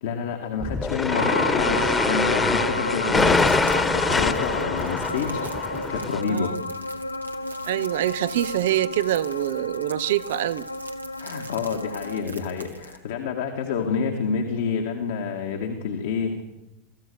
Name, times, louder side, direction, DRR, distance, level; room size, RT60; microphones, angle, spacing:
voice 1, 0.0-6.6 11.2-16.4, left 6 dB, 65° left, 3 dB, 2.1 m, -28 dB
sound 1, 0.6-6.2, left 3 dB, 15° left, 1.4 m, -24 dB
sound 2, 1.1-12.2, left 2 dB, 90° left, 0.7 m, -32 dB
sound 3, 3.2-13.0, right 3 dB, 90° right, 1.9 m, -44 dB
voice 2, 6.3-6.6 7.7-10.7, right 14 dB, 65° right, 18 dB, 0.7 m, -25 dB
25.0 x 15.5 x 7.1 m, 0.99 s
figure-of-eight pair, 85°, 0 cm